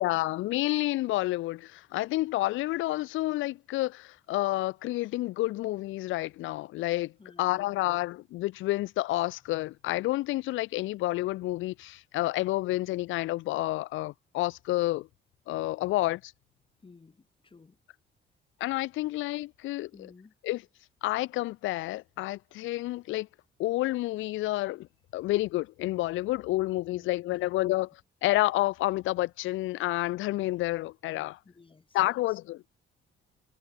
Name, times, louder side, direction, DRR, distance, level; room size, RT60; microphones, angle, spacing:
voice 1, 0.0-7.1 7.4-15.1 15.5-16.3 18.6-19.9 20.4-20.6 21.0-23.3 23.6-24.9 25.1-27.9 28.2-31.4 31.9-32.6, left 17 dB, 80° left, 0.4 m, -29 dB
voice 2, 7.2-7.6 16.8-17.8 19.9-20.4 26.9-27.1 27.4-27.5 31.4-32.4, left 4 dB, 25° left, 2.1 m, -55 dB
cardioid pair, 90°, 20 cm